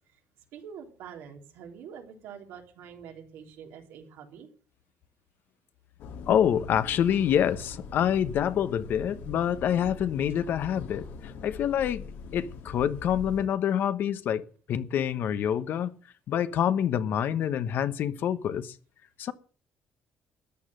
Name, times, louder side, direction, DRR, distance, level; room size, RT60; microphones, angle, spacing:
voice 1, 0.5-4.5, right 7 dB, 90° right, 3.6 m, -45 dB
sound 1, 6.0-13.5, left 4 dB, 85° left, 2.7 m, -42 dB
voice 2, 6.3-12.0 12.3-14.4 14.7-15.9 16.3-18.7 19.2-19.3, left 9 dB, 60° left, 1.1 m, -26 dB
14.0 x 10.0 x 6.5 m
cardioid pair, 135°, 4 cm